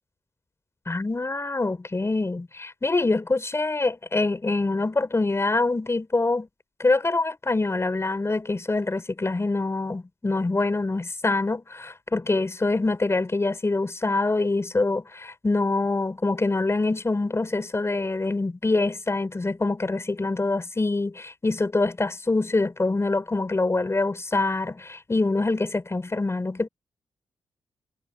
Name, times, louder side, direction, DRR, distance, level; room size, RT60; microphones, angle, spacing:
voice 1, 0.9-6.5 6.8-26.7, left 3 dB, 30° left, 4.4 m, -25 dB
cardioid pair, 65°, 10 cm